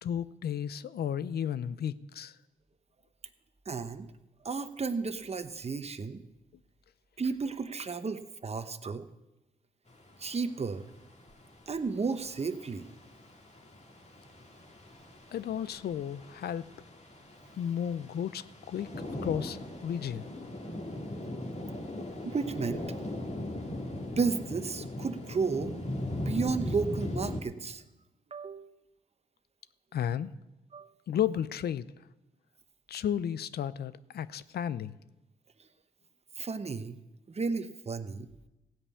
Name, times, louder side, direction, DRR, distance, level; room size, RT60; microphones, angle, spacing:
voice 1, 0.0-2.4 15.3-16.7 17.6-18.9 19.2-20.3 21.3-21.4 29.9-30.3 31.1-31.8 32.9-35.0, left 9 dB, 70° left, 16 dB, 0.5 m, -33 dB
voice 2, 3.7-4.1 4.4-6.2 7.2-9.1 10.2-10.9 11.7-12.9 22.2-22.8 24.2-25.8 26.1-27.8 28.3-28.7 30.7-30.9 35.6-35.7 36.4-37.0 37.3-38.3, right 4 dB, 40° right, 10 dB, 1.0 m, -33 dB
sound 1, 9.9-27.4, left 1 dB, 40° left, 2.3 m, -39 dB
16.0 x 5.4 x 8.4 m, 0.98 s
cardioid pair, 55°, 17 cm